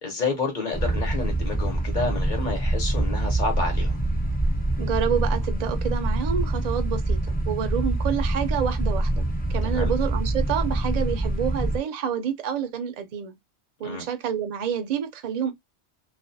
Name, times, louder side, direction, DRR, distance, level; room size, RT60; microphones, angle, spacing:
voice 1, 0.0-4.0 9.6-9.9 13.8-14.0, left 3 dB, 45° left, 0.9 m, -29 dB
sound 1, 0.7-11.8, right 1 dB, 15° left, 0.3 m, -25 dB
voice 2, 4.8-13.4 13.8-15.5, right 8 dB, 55° right, 0.4 m, -28 dB
2.4 x 2.3 x 2.5 m
omnidirectional pair, 1.2 m